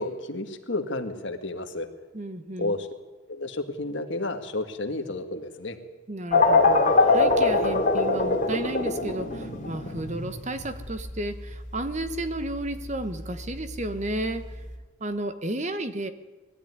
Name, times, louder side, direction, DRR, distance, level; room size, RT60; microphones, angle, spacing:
voice 1, 0.0-1.9 2.6-2.9 3.3-5.8, left 2 dB, 60° left, 6 dB, 1.9 m, -31 dB
voice 2, 2.1-2.8 6.1-14.6 15.0-16.1, right 1 dB, 35° right, 10 dB, 1.1 m, -32 dB
sound 1, 6.3-14.8, left 3 dB, 40° left, 3.3 m, -24 dB
21.0 x 13.0 x 9.7 m, 1.2 s
head